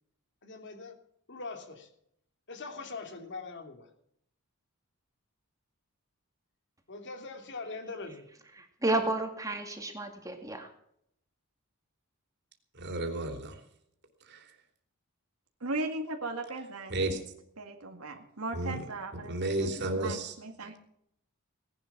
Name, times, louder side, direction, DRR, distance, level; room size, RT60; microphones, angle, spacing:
voice 1, 0.4-1.0 1.3-1.9 2.5-3.9 6.9-8.3, left 3 dB, 55° left, 6 dB, 2.7 m, -42 dB
voice 2, 8.6-10.7, right 2 dB, 15° right, 4 dB, 2.2 m, -31 dB
voice 3, 12.7-13.6 14.3-14.4 16.9-17.2 18.5-18.8 19.2-20.3, right 2 dB, 50° right, 5 dB, 3.3 m, -32 dB
voice 4, 15.6-17.2 17.6-19.7 20.0-20.8, right 2 dB, 80° right, 4 dB, 2.0 m, -38 dB
18.5 x 11.5 x 6.0 m, 0.72 s
head